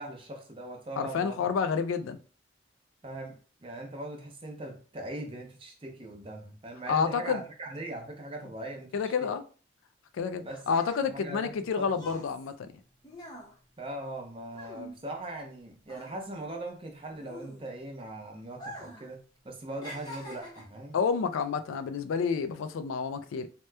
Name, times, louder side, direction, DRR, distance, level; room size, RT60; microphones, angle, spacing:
voice 1, 0.0-1.4 3.0-9.1 10.4-10.6 11.1-12.1 13.8-19.2 19.4-21.0, right 1 dB, 25° right, 0.5 m, -40 dB
voice 2, 1.0-2.2 6.9-7.4 8.9-9.4 10.1-12.7 20.9-23.5, left 6 dB, 85° left, 0.3 m, -29 dB
sound 1, 10.7-15.6 15.8-18.0 18.5-19.1 19.4-20.8 21.5-21.7, equal, 20° left, 0.6 m, -46 dB
2.9 x 2.1 x 3.2 m
head